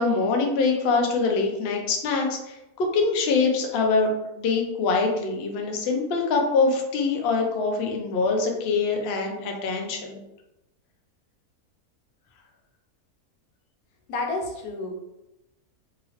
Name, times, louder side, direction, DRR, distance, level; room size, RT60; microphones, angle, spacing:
voice 1, 0.0-4.1 4.4-10.2, left 4 dB, 65° left, 2 dB, 0.6 m, -24 dB
voice 2, 14.1-15.0, left 2 dB, 85° left, 1 dB, 1.2 m, -30 dB
3.0 x 2.7 x 2.8 m, 0.92 s
omnidirectional pair, 1.6 m